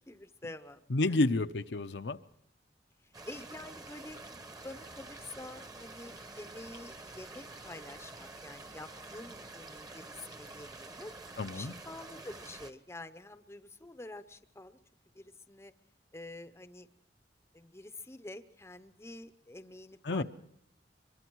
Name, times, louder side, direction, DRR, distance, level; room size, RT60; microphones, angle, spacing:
voice 1, 0.1-1.2 3.3-11.1 11.5-14.8 15.1-15.7 16.1-16.9 17.5-20.2, left 2 dB, 15° left, 0.7 m, -48 dB
voice 2, 0.9-2.2 11.4-11.8 20.0-20.2, left 2 dB, 75° left, 0.8 m, -30 dB
sound 1, 3.1-12.7, right 2 dB, 20° right, 1.1 m, -48 dB
25.0 x 22.5 x 4.7 m
head